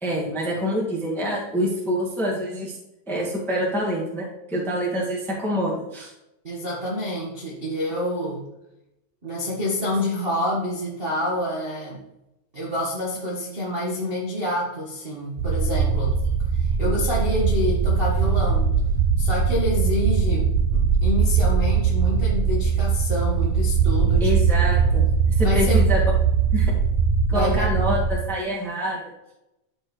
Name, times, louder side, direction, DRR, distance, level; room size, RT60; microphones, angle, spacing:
voice 1, 0.0-2.8 3.1-6.1 24.2-25.0 25.4-26.1 26.5-26.7 27.3-29.0, equal, ahead, -4 dB, 0.9 m, -26 dB
voice 2, 6.4-8.5 9.2-12.0 12.5-16.2 16.5-18.7 19.2-24.3 25.4-25.8 27.3-27.7, left 1 dB, 35° right, -6 dB, 0.9 m, -28 dB
sound 1, 15.4-28.1, right 5 dB, 75° right, 2.0 m, -21 dB
13.0 x 4.7 x 3.1 m, 0.91 s
omnidirectional pair, 3.5 m